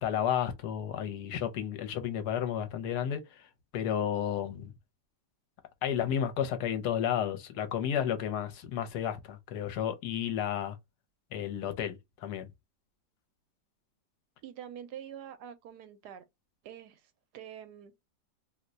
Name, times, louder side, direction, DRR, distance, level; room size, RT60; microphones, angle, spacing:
voice 1, 0.0-3.2 3.7-4.7 5.8-10.8 11.3-12.5, left 9 dB, 75° left, 1.2 m, -32 dB
voice 2, 14.4-16.2 16.6-18.0, right 9 dB, 80° right, 1.2 m, -46 dB
2.9 x 2.2 x 3.7 m
omnidirectional pair, 1.8 m